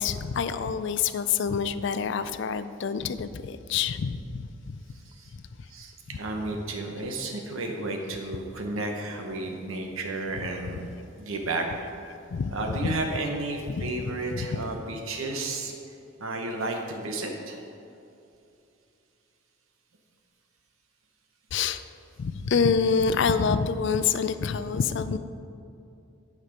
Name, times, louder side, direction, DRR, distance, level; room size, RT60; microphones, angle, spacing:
voice 1, 0.0-4.8 12.3-12.5 12.8-12.9 13.7-13.9 14.3-14.6 21.5-21.8 22.2-25.2, left 6 dB, 55° left, 12 dB, 0.4 m, -27 dB
voice 2, 5.7-10.9 11.2-11.7 12.5-15.7 16.2-17.6, right 2 dB, 75° right, 2 dB, 1.0 m, -32 dB
9.5 x 5.9 x 5.1 m, 2.6 s
head